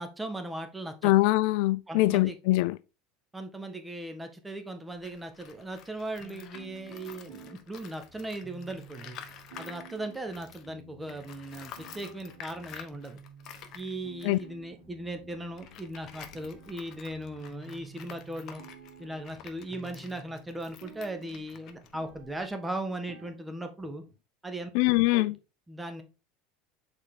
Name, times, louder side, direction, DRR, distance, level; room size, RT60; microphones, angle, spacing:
voice 1, 0.0-1.1 1.9-2.4 3.3-9.2 9.6-13.2 13.7-18.6 19.0-24.0 24.4-24.7 25.1-25.3 25.7-26.0, right 1 dB, 10° right, 1.5 m, -38 dB
voice 2, 1.0-2.8 14.2-14.4 24.7-25.3, left 19 dB, 70° left, 0.3 m, -23 dB
Tools, 5.0-10.7 11.1-22.5, left 8 dB, 50° left, 1.1 m, -50 dB
sound 1, 6.2-24.2, right 4 dB, 85° right, 3.5 m, -52 dB
6.6 x 4.4 x 3.7 m
hypercardioid pair, 90°, 0 cm